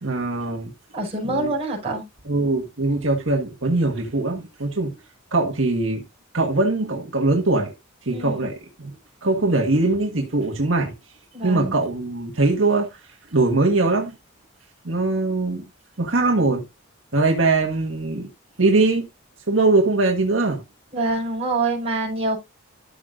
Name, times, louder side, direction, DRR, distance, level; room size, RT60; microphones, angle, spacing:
voice 1, 0.0-0.7 1.2-1.5 2.2-4.9 5.3-6.0 6.3-7.7 8.0-8.9 9.2-10.9 11.4-13.0 13.3-14.1 14.8-15.6 16.0-16.6 17.1-18.3 18.6-19.1 19.5-20.6, right 2 dB, 70° right, 1.7 m, -21 dB
voice 2, 0.9-2.0 8.1-8.4 11.3-11.7 20.9-22.4, right 2 dB, 30° right, 5.9 m, -25 dB
13.5 x 6.5 x 2.5 m
head